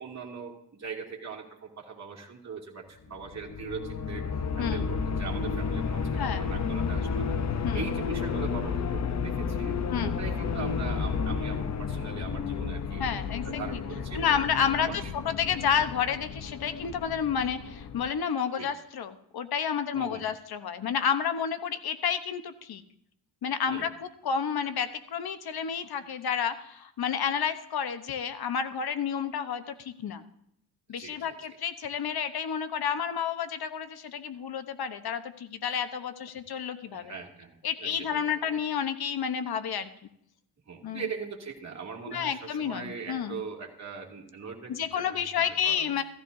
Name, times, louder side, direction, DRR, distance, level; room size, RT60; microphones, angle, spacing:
voice 1, 0.0-7.4 7.7-13.0 13.4-14.4 14.8-15.1 18.6-18.7 19.9-20.2 23.7-23.9 30.9-31.3 35.7-35.8 36.9-38.2 40.7-45.1 45.6-45.9, right 5 dB, 45° right, 0 dB, 2.7 m, -40 dB
sound 1, 3.1-18.1, left 6 dB, 45° left, 0.7 m, -32 dB
voice 2, 13.0-13.5 13.7-13.8 14.1-22.8 23.4-23.9 24.2-30.2 30.9-37.1 37.6-39.9 40.8-41.0 42.1-43.4 44.7-46.0, left 7 dB, 70° left, 9 dB, 1.1 m, -30 dB
15.5 x 14.5 x 2.7 m, 0.73 s
cardioid pair, 90°, 39 cm